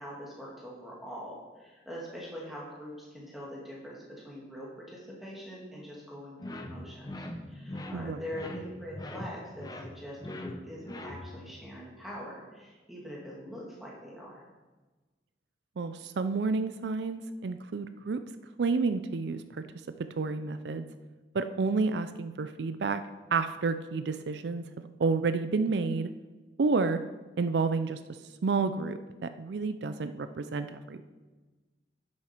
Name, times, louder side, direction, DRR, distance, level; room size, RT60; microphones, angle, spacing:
voice 1, 0.0-14.4, equal, ahead, -5 dB, 2.4 m, -43 dB
sound 1, 6.4-11.5, left 1 dB, 20° left, 0.7 m, -42 dB
voice 2, 15.8-18.2 18.6-19.4 20.2-20.9 21.3-23.0 23.3-26.1 26.6-27.0 27.4-28.0 28.4-31.0, right 4 dB, 75° right, 11 dB, 0.4 m, -30 dB
10.5 x 7.4 x 4.5 m, 1.2 s
head